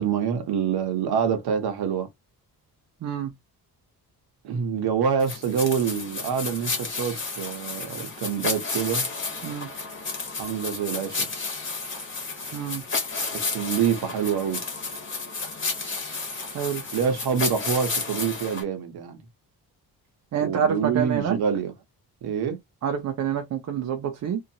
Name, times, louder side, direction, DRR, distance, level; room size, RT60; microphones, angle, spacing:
voice 1, 0.0-2.1 4.4-9.1 10.4-11.5 13.3-14.6 16.9-19.2 20.4-21.7 22.2-22.6, right 7 dB, 75° right, 1.0 m, -26 dB
voice 2, 3.0-3.3 9.4-9.7 12.5-12.8 16.5-16.8 20.3-21.4 22.8-24.4, right 8 dB, 50° right, 0.5 m, -27 dB
sound 1, 5.2-18.6, left 4 dB, 30° left, 1.1 m, -32 dB
2.7 x 2.5 x 2.7 m
wide cardioid pair, 170°, 38 cm